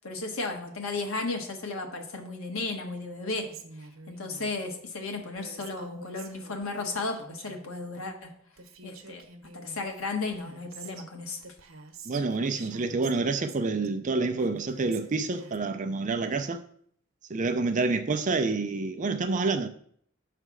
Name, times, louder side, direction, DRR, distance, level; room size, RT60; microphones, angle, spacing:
voice 1, 0.0-3.5 4.1-8.3 8.8-9.2 9.5-11.4, left 3 dB, 90° left, 1.4 m, -34 dB
Female speech woman speaking, 3.3-4.5 5.4-7.7 8.3-8.4 8.6-11.1 11.4-13.9 14.4-15.6, right 4 dB, 85° right, 1.0 m, -48 dB
voice 2, 12.1-16.6 17.3-19.7, right 3 dB, 35° right, 0.5 m, -28 dB
9.1 x 3.3 x 6.1 m
head